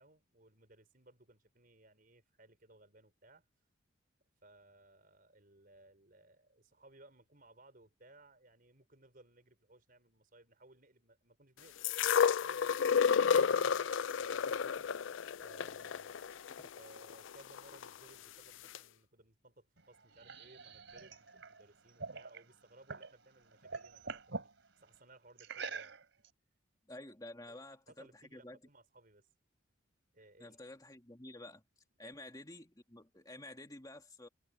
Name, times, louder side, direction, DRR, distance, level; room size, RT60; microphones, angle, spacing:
voice 1, 0.0-3.5 4.4-16.2 16.7-24.5 24.8-26.0 27.5-29.3 30.1-30.6 32.0-32.1, right 2 dB, 45° right, 5.0 m, -62 dB
sound 1, 11.8-17.9 18.7-18.8, left 6 dB, 70° left, 0.4 m, -31 dB
sound 2, 19.8-23.1 23.5-24.5 25.4-26.3, right 4 dB, 65° right, 3.2 m, -45 dB
voice 2, 26.9-28.6 30.4-31.6 32.0-34.3, left 1 dB, 20° left, 2.4 m, -51 dB
head